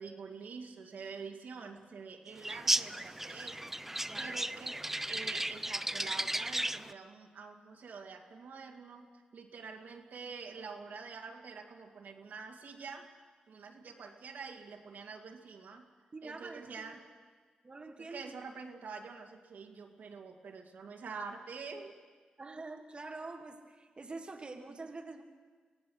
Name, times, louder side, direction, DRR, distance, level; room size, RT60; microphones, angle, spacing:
voice 1, 0.0-4.8 5.1-13.1 13.5-15.9 16.2-17.0 18.0-22.0, right 5 dB, 75° right, 2 dB, 2.2 m, -46 dB
sound 1, 2.4-6.9, right 1 dB, 10° right, 0.5 m, -35 dB
voice 2, 4.1-4.4 16.1-17.0 17.6-18.3 22.4-25.2, right 3 dB, 35° right, 3 dB, 1.8 m, -46 dB
25.0 x 17.0 x 6.4 m, 1.5 s
cardioid pair, 60°, 3 cm